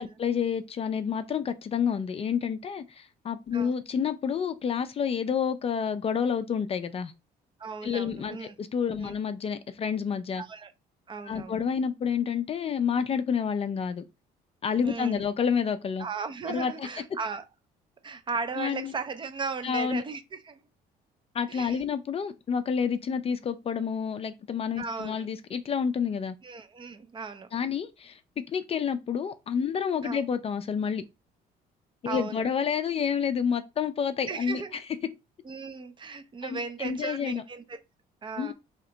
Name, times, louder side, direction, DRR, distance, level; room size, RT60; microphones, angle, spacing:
voice 1, 0.0-7.1 7.8-10.4 11.3-14.0 14.6-16.1 16.5-16.9 18.6-18.9 19.6-20.0 21.3-26.3 27.5-28.2 28.5-31.0 32.0-34.6 36.4-37.4 38.4-38.5, left 7 dB, 35° left, 0.4 m, -29 dB
voice 2, 7.6-8.5 9.0-9.1 10.4-10.7 11.1-11.6 14.8-15.2 16.0-17.4 18.0-20.6 21.5-21.8 24.8-25.3 26.4-27.5 30.0-30.2 32.0-32.4 34.3-34.8 35.4-37.8 38.2-38.5, right 4 dB, 30° right, 0.6 m, -36 dB
3.3 x 2.9 x 3.8 m
cardioid pair, 110°, 17 cm